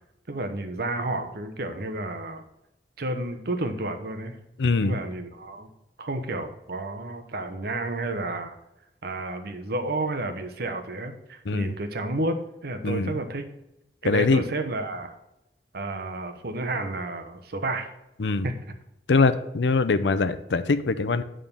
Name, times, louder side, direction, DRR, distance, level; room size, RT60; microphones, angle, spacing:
voice 1, 0.3-2.4 3.0-4.4 4.8-5.7 6.0-8.6 9.0-13.5 14.0-15.2 15.7-17.9 18.4-18.6, right 2 dB, 60° right, 7 dB, 1.0 m, -31 dB
voice 2, 4.6-5.0 11.5-11.7 12.8-13.1 14.0-14.4 18.2-18.5 19.1-21.2, left 4 dB, 85° left, 13 dB, 0.6 m, -22 dB
8.9 x 3.8 x 6.7 m, 0.89 s
head